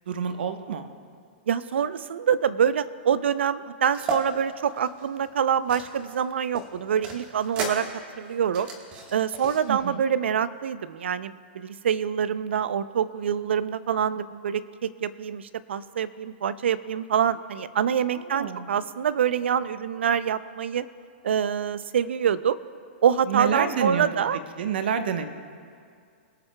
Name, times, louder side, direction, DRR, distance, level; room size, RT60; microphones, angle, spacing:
voice 1, 0.1-0.9 9.7-10.0 18.3-18.7 23.3-24.2 24.6-25.3, right 7 dB, 60° right, 8 dB, 0.9 m, -28 dB
voice 2, 1.5-7.9 8.2-8.7 9.1-20.9 21.2-22.6 23.0-24.4, right 8 dB, 85° right, 15 dB, 0.5 m, -25 dB
sound 1, 3.9-4.2 4.7-6.2 6.5-9.6, right 2 dB, 20° right, 1.3 m, -35 dB
23.5 x 8.8 x 2.2 m, 2.2 s
hypercardioid pair, 175°, 6 cm